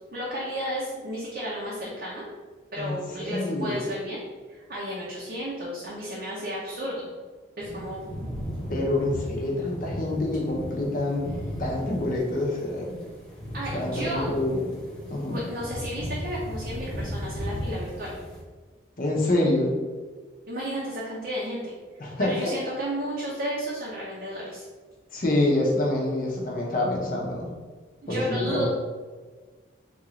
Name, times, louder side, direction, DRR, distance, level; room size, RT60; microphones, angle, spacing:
voice 1, 0.1-2.2 2.7-4.2 4.5-7.1 7.6-8.1 13.5-14.3 15.3-18.2 20.5-21.7 22.2-24.6 28.0-28.7, equal, 50° right, -6 dB, 0.6 m, -33 dB
voice 2, 2.8-3.9 8.7-11.3 11.6-12.9 13.7-14.6 15.1-15.4 19.0-19.7 22.0-22.5 25.1-27.5 28.1-28.7, left 1 dB, 45° left, -2 dB, 0.7 m, -26 dB
sound 1, 7.6-18.4, equal, 5° left, 0.6 m, -36 dB
3.7 x 2.4 x 3.1 m, 1.4 s
head